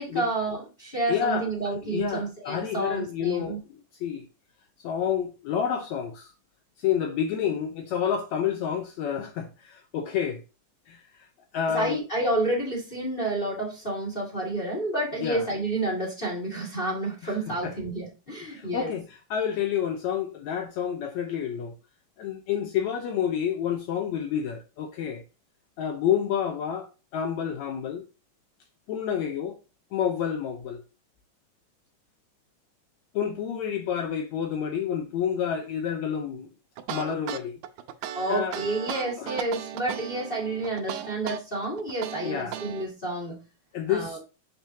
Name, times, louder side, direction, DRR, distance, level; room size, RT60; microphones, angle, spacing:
voice 1, 0.0-3.6 11.7-18.9 38.1-43.3 43.9-44.2, right 2 dB, 25° left, 1.2 m, -30 dB
voice 2, 1.1-3.6 4.0-4.3 4.8-6.3 6.8-10.4 10.9-11.0 11.5-12.0 15.2-15.5 17.2-17.4 17.6-17.7 18.4-21.7 22.2-25.2 25.8-26.9 27.1-28.0 28.9-29.5 29.9-30.8 33.1-36.5 36.9-37.6 38.3-38.6 39.2-39.4 42.2-42.6 43.7-44.2, left 8 dB, 85° left, 1.6 m, -29 dB
sound 1, 36.8-42.9, right 11 dB, 90° right, 2.5 m, -36 dB
7.0 x 6.0 x 2.7 m
omnidirectional pair, 4.1 m